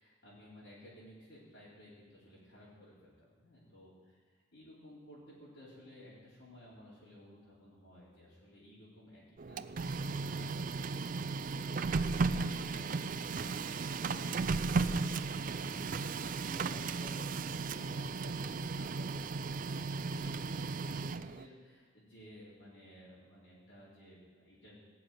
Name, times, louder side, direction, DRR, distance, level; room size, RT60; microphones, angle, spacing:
voice 1, 0.0-3.9 4.2-19.2 19.6-24.8, equal, 60° left, -9 dB, 4.5 m, -55 dB
Printer, 9.4-21.5, right 4 dB, 40° right, 0.4 m, -35 dB
18.0 x 6.9 x 9.4 m, 1.4 s
head